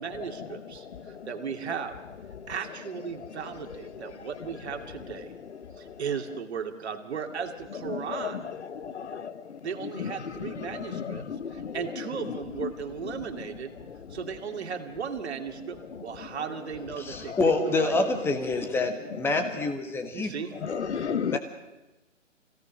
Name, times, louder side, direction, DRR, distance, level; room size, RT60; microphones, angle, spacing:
voice 1, 0.0-1.9 2.5-5.3 5.8-8.5 9.6-13.8 14.1-17.3 17.7-18.2 20.1-20.5, right 7 dB, 55° right, 2.5 m, -36 dB
voice 2, 7.9-8.3 8.7-9.6 10.0-11.8 17.3-17.4 20.6-21.4, left 7 dB, 60° left, 1.2 m, -33 dB
voice 3, 17.0-20.3 20.7-20.9 21.3-21.4, left 3 dB, 5° left, 1.4 m, -27 dB
25.0 x 17.0 x 6.3 m
figure-of-eight pair, 135°, 39 cm